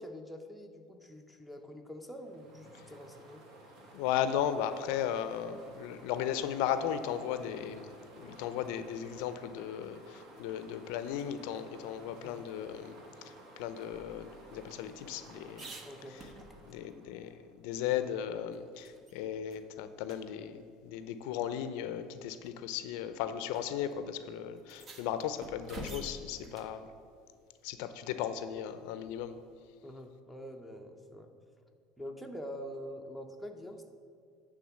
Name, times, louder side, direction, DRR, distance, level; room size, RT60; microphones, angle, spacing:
voice 1, 0.0-3.4 12.1-12.4 15.8-16.2 29.8-31.3 32.0-33.9, equal, 5° left, 2 dB, 0.8 m, -45 dB
sound 1, 2.1-17.5, right 2 dB, 55° right, 1.5 m, -55 dB
voice 2, 3.9-7.9 8.2-13.0 13.2-15.7 16.7-26.9 27.6-29.4, left 9 dB, 75° left, 11 dB, 0.5 m, -36 dB
sound 2, 13.9-16.9 17.3-17.4 17.7-19.2 19.5-19.6 20.0-20.2 21.2-21.3 22.2-22.5 23.5-23.6 23.9-24.0 24.6-26.8 29.0-29.5, right 1 dB, 35° right, 1.0 m, -49 dB
9.3 x 3.7 x 7.1 m, 2.2 s
supercardioid pair, 115°, 0 cm